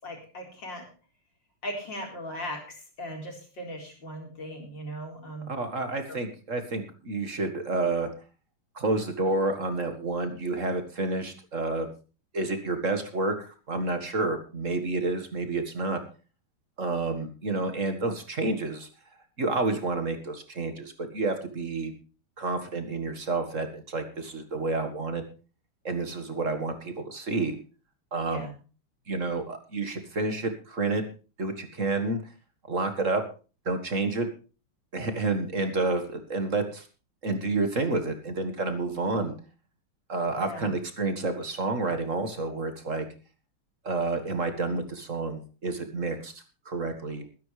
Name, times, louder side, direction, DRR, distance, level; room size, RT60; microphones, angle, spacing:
voice 1, 0.0-0.9 1.6-5.5 6.1-6.2 28.2-28.5 40.4-40.7, equal, 55° left, 1 dB, 4.9 m, -38 dB
voice 2, 5.5-8.1 8.8-11.9 12.3-16.0 16.8-18.9 19.4-21.9 22.4-25.2 25.8-27.6 28.1-28.5 29.1-31.0 31.4-32.2 32.7-33.2 33.7-34.3 34.9-36.9 37.2-39.3 40.1-43.1 43.8-46.3 46.7-47.3, right 3 dB, 35° right, 7 dB, 1.9 m, -29 dB
21.0 x 10.5 x 3.3 m, 0.34 s
omnidirectional pair, 2.4 m